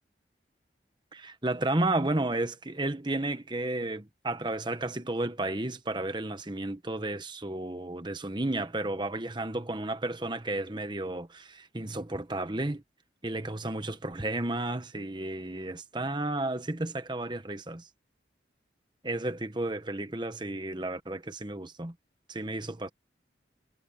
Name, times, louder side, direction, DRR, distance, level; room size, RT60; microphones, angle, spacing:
voice 1, 1.1-12.8 13.2-17.9 19.0-21.9 22.3-22.9, right 2 dB, 25° right, 1.2 m, -32 dB
head